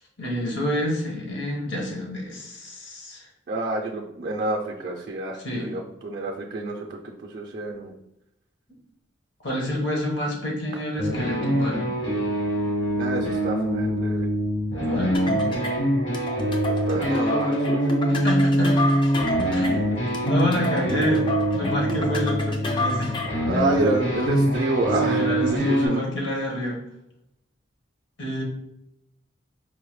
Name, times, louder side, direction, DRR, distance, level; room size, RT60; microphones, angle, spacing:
voice 1, 0.2-3.3 5.4-5.7 9.4-11.9 14.8-15.2 18.1-18.8 19.5-19.8 20.3-23.2 25.0-26.8 28.2-28.4, equal, 65° left, -2 dB, 1.1 m, -28 dB
voice 2, 3.5-7.9 13.0-14.3 16.7-17.9 23.5-25.2 25.5-26.0, right 2 dB, 50° right, -1 dB, 0.4 m, -28 dB
sound 1, 11.0-25.9, right 1 dB, 90° left, 1.5 m, -24 dB
sound 2, 15.1-23.5, equal, 25° left, 0.4 m, -30 dB
4.6 x 2.1 x 3.0 m, 0.83 s
head